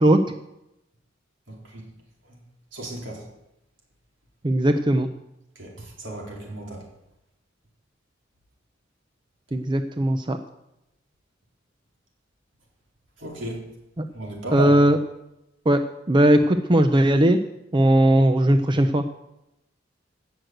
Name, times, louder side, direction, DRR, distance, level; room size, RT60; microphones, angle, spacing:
voice 1, 2.7-3.2 5.6-6.8 13.2-13.6 14.1-14.8, right 2 dB, 75° right, -1 dB, 3.9 m, -33 dB
voice 2, 4.4-5.1 9.5-10.4 14.0-14.1 14.5-15.0 15.7-17.4 17.7-19.0, right 1 dB, 25° right, 8 dB, 0.6 m, -18 dB
17.0 x 6.5 x 7.9 m, 0.89 s
head